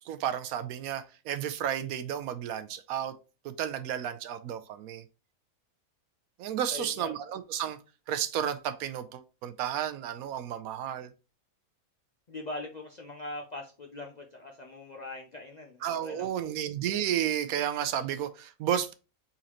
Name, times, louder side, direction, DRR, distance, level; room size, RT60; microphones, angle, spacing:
voice 1, 0.1-3.1 3.4-5.0 6.4-7.8 8.1-11.1 15.8-18.9, right 10 dB, 90° right, 1.1 m, -32 dB
voice 2, 6.7-7.1 12.3-16.6, left 2 dB, 55° left, 0.5 m, -41 dB
4.3 x 3.8 x 2.9 m
omnidirectional pair, 1.5 m